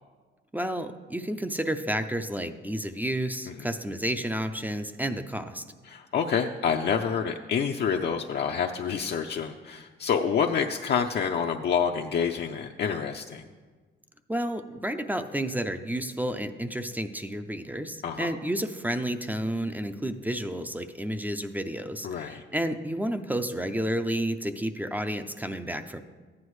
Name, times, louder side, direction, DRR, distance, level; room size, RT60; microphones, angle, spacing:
voice 1, 0.5-5.6 14.3-26.0, right 1 dB, 10° right, 8 dB, 0.4 m, -31 dB
voice 2, 5.9-13.4 18.0-18.4 22.0-22.4, left 7 dB, 55° left, 3 dB, 0.5 m, -28 dB
14.5 x 9.7 x 3.2 m, 1.4 s
cardioid pair, 120°, 21 cm